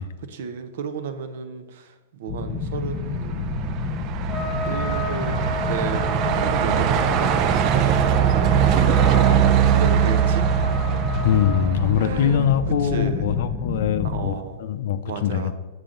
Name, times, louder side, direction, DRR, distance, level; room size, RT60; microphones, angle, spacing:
voice 1, 0.0-3.4 4.6-5.4 5.7-7.3 7.6-7.8 8.4-10.5 12.0-12.5 12.8-13.3 14.0-14.6 15.0-15.5, right 7 dB, 65° right, 9 dB, 0.8 m, -33 dB
sound 1, 2.3-14.3, left 4 dB, 30° left, 1.0 m, -29 dB
Truck, 3.0-12.4, right 10 dB, 35° right, 0.4 m, -21 dB
Trumpet, 4.3-11.6, left 1 dB, ahead, 1.7 m, -32 dB
voice 2, 11.2-15.5, left 9 dB, 60° left, 11 dB, 0.5 m, -22 dB
6.9 x 6.5 x 3.8 m, 1.2 s
hypercardioid pair, 140°, 0 cm